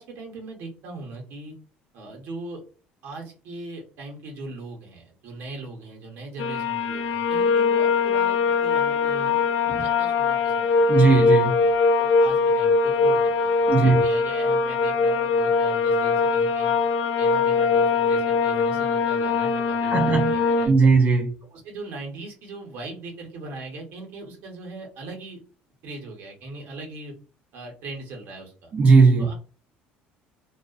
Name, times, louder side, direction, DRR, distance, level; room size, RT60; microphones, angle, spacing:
voice 1, 0.0-1.5 1.9-2.6 3.0-9.4 9.7-11.1 12.0-13.6 13.8-16.7 17.2-20.9 21.5-25.4 25.8-27.1 27.5-28.7 29.2-29.3, right 2 dB, 70° right, 0.9 m, -39 dB
sound 1, 6.4-20.7, left 4 dB, 65° left, 0.3 m, -22 dB
voice 2, 10.9-11.6 13.7-14.0 19.8-20.3 20.7-21.3 28.7-29.3, right 4 dB, 35° right, 0.4 m, -18 dB
2.4 x 2.1 x 2.4 m
cardioid pair, 115°, 4 cm